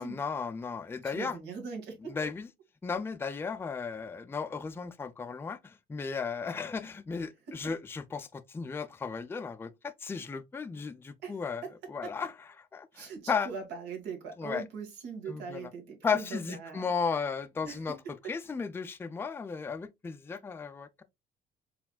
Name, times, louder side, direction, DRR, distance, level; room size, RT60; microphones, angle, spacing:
voice 1, 0.0-1.4 2.1-2.5 2.8-11.6 11.9-12.3 12.7-13.5 14.4-14.6 15.3-15.7 16.0-18.0 18.3-21.0, left 5 dB, 15° left, 0.4 m, -35 dB
voice 2, 1.0-2.2 7.5-7.7 11.2-11.7 12.0-12.1 12.9-16.9 17.6-17.9 18.2-18.3, right 5 dB, 85° right, 1.7 m, -41 dB
4.7 x 3.5 x 2.2 m
cardioid pair, 110°, 17 cm